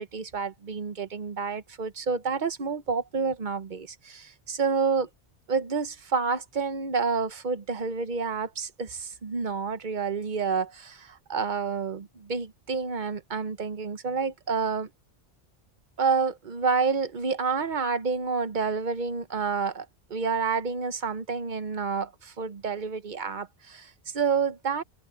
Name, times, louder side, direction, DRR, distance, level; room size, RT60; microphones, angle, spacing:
voice 1, 0.0-5.1 5.5-14.9 16.0-24.8, right 5 dB, 45° right, 1.1 m, -29 dB
omnidirectional pair, 1.2 m